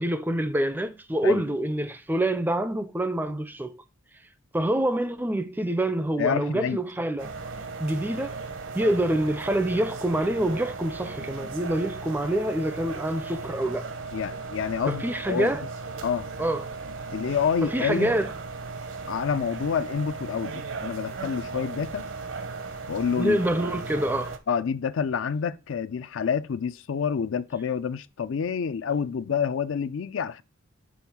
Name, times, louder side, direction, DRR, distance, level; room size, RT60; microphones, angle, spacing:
voice 1, 0.0-3.8 4.5-7.3 7.8-8.4 8.7-13.9 14.9-15.6 16.4-16.7 17.6-18.3 23.2-24.4, right 1 dB, 10° right, 0.4 m, -26 dB
voice 2, 6.2-6.8 14.1-15.5 16.0-16.3 17.1-18.2 19.1-22.1 22.9-23.4 24.5-30.4, left 6 dB, 70° left, 0.4 m, -28 dB
sound 1, 7.2-24.4, right 4 dB, 70° right, 0.8 m, -36 dB
6.4 x 3.5 x 5.8 m
head